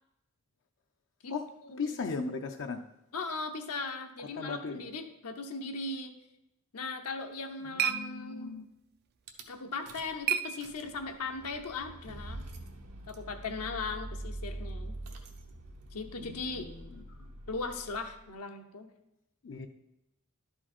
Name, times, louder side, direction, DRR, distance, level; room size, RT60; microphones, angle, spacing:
voice 1, 1.8-2.8 4.4-4.8 7.7-8.7 16.2-16.8 19.4-19.7, left 4 dB, 55° left, 5 dB, 0.5 m, -37 dB
voice 2, 3.1-6.1 6.7-8.5 9.5-12.4 13.1-14.9 15.9-16.7 17.5-18.9, left 3 dB, 80° left, 5 dB, 0.9 m, -38 dB
sound 1, 7.0-11.3, right 9 dB, 45° right, 0.4 m, -37 dB
Rattle / Car / Engine starting, 9.3-9.4 9.9-10.2 10.5-18.2, right 1 dB, 85° right, 1.0 m, -44 dB
11.5 x 5.0 x 4.3 m, 0.85 s
head